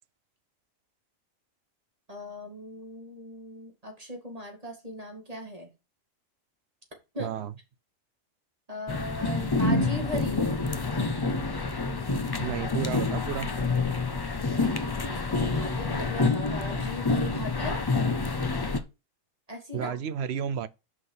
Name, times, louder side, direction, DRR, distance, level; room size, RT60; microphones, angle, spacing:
voice 1, 2.1-5.7 7.1-7.3 8.7-10.4 15.1-17.8 19.5-19.9, left 1 dB, 25° right, 2.2 m, -38 dB
voice 2, 7.2-7.5 12.4-13.5 19.7-20.7, right 8 dB, 60° right, 0.7 m, -32 dB
sound 1, 8.9-18.8, left 3 dB, 30° left, 0.4 m, -27 dB
6.3 x 5.5 x 5.7 m
omnidirectional pair, 1.4 m